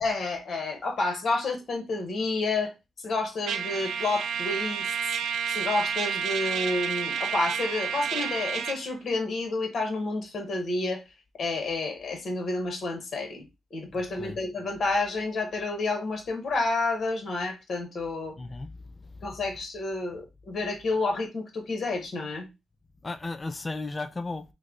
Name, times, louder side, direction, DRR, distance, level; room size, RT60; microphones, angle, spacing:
voice 1, 0.0-4.9 5.5-11.0 11.4-13.5 13.7-18.4 19.2-22.5, left 3 dB, 55° left, 1.1 m, -30 dB
Trumpet, 3.5-8.8, right 7 dB, 85° right, 0.4 m, -30 dB
voice 2, 13.9-14.4 18.4-19.4 23.0-24.4, left 3 dB, 30° left, 0.4 m, -36 dB
3.1 x 2.1 x 3.7 m
cardioid pair, 90°, 0 cm